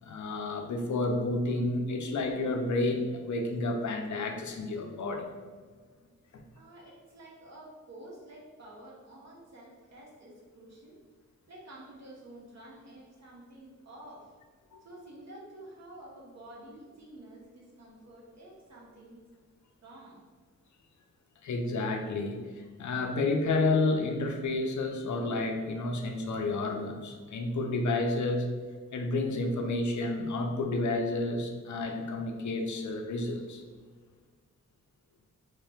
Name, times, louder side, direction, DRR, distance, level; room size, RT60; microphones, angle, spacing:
voice 1, 0.0-5.3 6.3-6.4 14.7-14.9 21.4-28.5 28.9-33.6, left 2 dB, 65° left, 3 dB, 0.5 m, -30 dB
voice 2, 6.5-11.0 11.5-14.4 14.8-19.2 19.8-20.2, right 1 dB, 55° right, -4 dB, 1.1 m, -50 dB
3.3 x 2.8 x 3.4 m, 1.5 s
wide cardioid pair, 105°, 32 cm